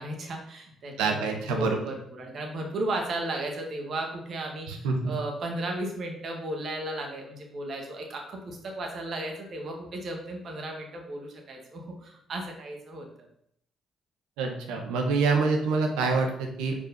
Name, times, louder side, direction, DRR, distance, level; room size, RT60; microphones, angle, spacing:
voice 1, 0.0-13.1, right 1 dB, 55° right, 1 dB, 1.8 m, -35 dB
voice 2, 1.0-1.8 4.7-5.1 14.4-16.8, right 4 dB, 80° right, 3 dB, 1.2 m, -26 dB
5.4 x 4.7 x 5.3 m, 0.72 s
hypercardioid pair, 50°, 0 cm